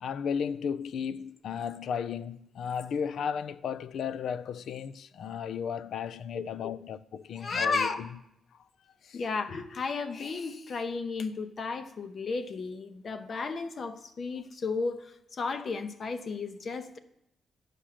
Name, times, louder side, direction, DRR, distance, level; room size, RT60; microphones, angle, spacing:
voice 1, 0.0-8.1 9.0-9.2, left 7 dB, 75° left, 0.4 m, -34 dB
voice 2, 6.3-6.7 7.4-8.0 9.1-17.0, left 4 dB, 55° left, 0.7 m, -33 dB
9.8 x 5.1 x 5.9 m
cardioid pair, 85°, 0 cm